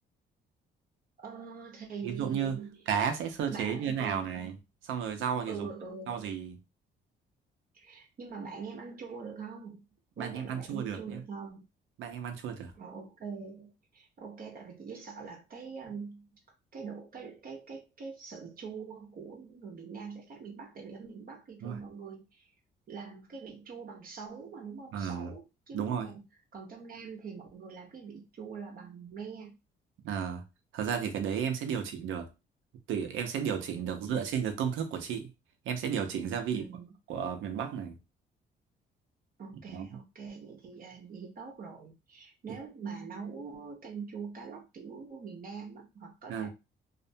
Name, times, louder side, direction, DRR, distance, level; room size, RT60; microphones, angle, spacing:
voice 1, 1.2-2.8 3.5-4.3 5.5-6.2 7.7-9.9 10.2-11.6 12.8-16.3 16.7-22.5 22.9-26.2 26.5-29.6 36.5-36.9 39.4-46.5, right 5 dB, 45° right, 0.7 m, -43 dB
voice 2, 2.0-2.6 2.9-4.6 4.8-5.7 6.1-6.6 10.2-11.2 12.0-12.7 21.6-21.8 24.9-25.3 25.7-26.1 30.0-30.4 30.7-32.3 32.9-35.3 35.6-36.6 37.1-38.0 39.7-39.8 46.3-46.5, right 7 dB, 85° right, 0.6 m, -33 dB
2.5 x 2.1 x 2.7 m
cardioid pair, 90°, 20 cm